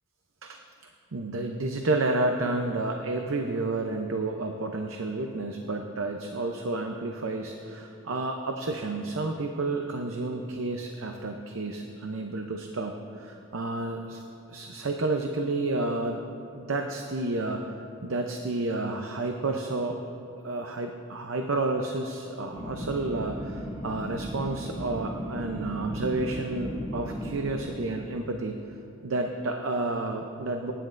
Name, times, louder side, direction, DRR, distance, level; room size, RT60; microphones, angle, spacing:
voice 1, 1.1-14.2 14.5-16.2 16.5-17.7 18.0-20.0 20.4-28.6 29.0-30.7, right 2 dB, 85° right, 4 dB, 0.7 m, -30 dB
sound 1, 22.5-27.6, equal, 25° right, 1.5 m, -36 dB
23.5 x 10.0 x 2.6 m, 2.8 s
head